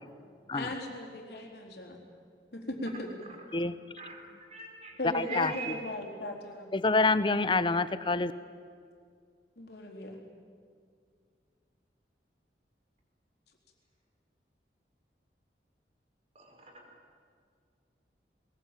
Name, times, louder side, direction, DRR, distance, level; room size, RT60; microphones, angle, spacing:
voice 1, 0.5-2.0 2.5-3.3 5.0-6.7 9.6-10.1, left 1 dB, 65° left, 1 dB, 4.0 m, -38 dB
voice 2, 4.5-5.7 16.4-16.7, right 5 dB, 40° right, 1 dB, 5.2 m, -42 dB
voice 3, 5.1-5.7 6.7-8.3, left 3 dB, 30° left, 14 dB, 0.8 m, -27 dB
22.0 x 20.0 x 9.1 m, 2.2 s
head